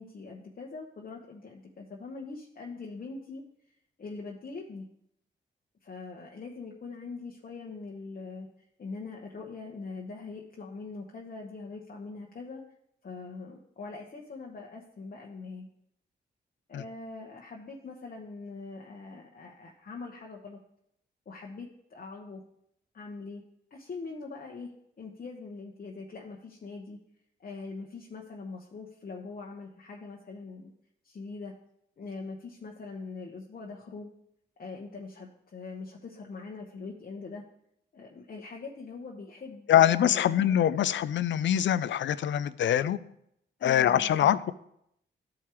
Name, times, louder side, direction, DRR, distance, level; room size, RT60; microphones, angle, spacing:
voice 1, 0.0-3.4 4.0-4.9 5.8-8.5 8.8-12.6 13.0-15.7 16.7-20.6 21.3-22.4 22.9-23.4 23.7-27.0 27.4-30.7 31.0-31.5 32.0-34.1 34.6-37.4 37.9-40.6 43.6-44.3, left 4 dB, 50° left, 1.0 m, -42 dB
voice 2, 39.7-43.0 43.6-44.5, left 10 dB, 70° left, 0.4 m, -24 dB
12.5 x 4.8 x 3.0 m
cardioid pair, 65°, 20 cm